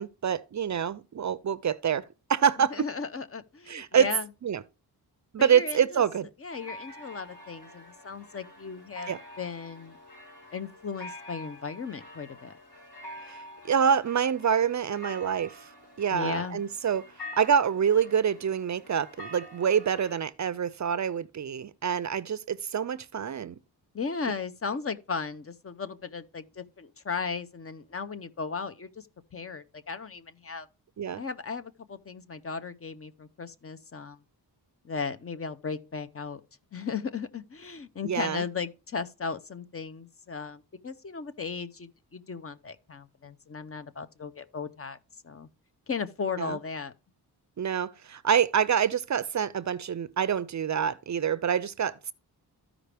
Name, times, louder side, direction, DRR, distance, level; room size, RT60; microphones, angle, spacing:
voice 1, 0.0-2.9 3.7-4.1 4.4-4.6 5.3-6.3 9.1-9.2 13.3-15.6 16.0-17.0 17.4-23.6 31.0-31.2 38.0-38.4 46.4-46.6 47.6-52.1, right 8 dB, 45° right, 0.5 m, -26 dB
voice 2, 2.7-4.3 5.4-6.0 6.4-9.1 9.4-10.0 10.5-12.5 16.1-16.6 23.9-29.1 29.3-30.7 31.2-34.2 34.8-36.4 36.7-45.0 45.2-45.5 45.9-46.9, left 5 dB, 35° left, 0.6 m, -36 dB
sound 1, 6.5-20.2, left 1 dB, 70° left, 4.7 m, -47 dB
14.0 x 5.0 x 3.4 m
wide cardioid pair, 130°, 40 cm